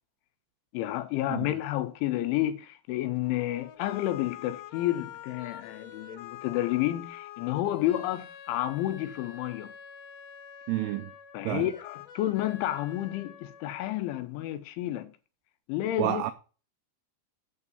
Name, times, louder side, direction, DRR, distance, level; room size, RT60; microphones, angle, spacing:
voice 1, 0.7-9.7 11.3-15.1 15.7-16.2, left 14 dB, 85° left, 3.1 m, -30 dB
sound 1, 3.2-14.2, left 10 dB, 65° left, 2.9 m, -46 dB
voice 2, 10.7-11.1 11.4-11.7 16.0-16.3, right 14 dB, 85° right, 2.3 m, -29 dB
9.4 x 4.8 x 6.8 m
omnidirectional pair, 5.4 m